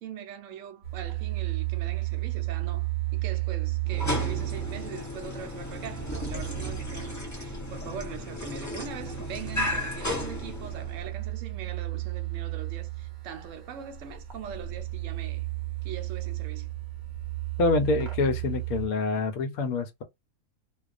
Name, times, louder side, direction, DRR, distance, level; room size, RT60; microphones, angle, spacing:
voice 1, 0.0-15.5 15.8-16.7, right 8 dB, 65° right, 0.9 m, -42 dB
sound 1, 0.8-18.9, right 17 dB, 50° right, 0.6 m, -34 dB
sound 2, 3.8-11.1, left 2 dB, 25° left, 0.4 m, -34 dB
voice 2, 17.6-20.0, left 3 dB, 80° left, 1.0 m, -26 dB
2.3 x 2.3 x 2.4 m
omnidirectional pair, 1.5 m